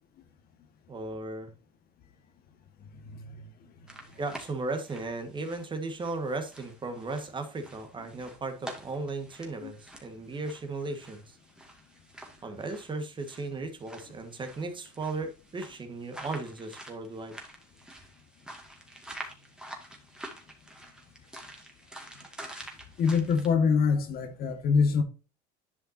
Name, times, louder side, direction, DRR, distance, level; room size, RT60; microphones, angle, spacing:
voice 1, 0.9-1.5 4.2-11.4 12.4-17.3, right 3 dB, 25° right, 1.6 m, -36 dB
voice 2, 3.0-3.5 9.6-9.7 23.0-25.0, left 5 dB, 50° left, 1.7 m, -25 dB
sound 1, 3.9-23.5, right 1 dB, 5° right, 2.2 m, -48 dB
11.0 x 5.7 x 2.8 m
supercardioid pair, 105°, 20 cm